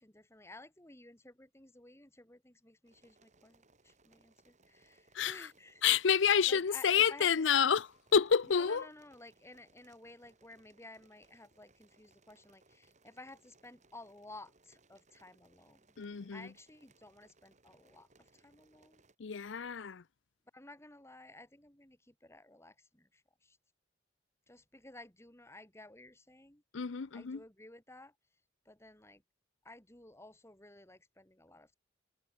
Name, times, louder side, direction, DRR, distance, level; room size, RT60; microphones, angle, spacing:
voice 1, 0.0-5.8 6.5-7.3 7.6-7.8 8.6-15.9 16.3-19.0 20.5-23.6 24.5-26.6 27.1-28.1 28.7-29.2 29.6-31.7, left 2 dB, 15° left, 2.5 m, -54 dB
sound 1, 2.8-19.1, right 3 dB, 40° right, 4.7 m, -68 dB
voice 2, 5.1-5.5 5.8-8.9 16.0-16.5 19.2-20.0 26.7-27.4, left 7 dB, 85° left, 0.6 m, -29 dB
head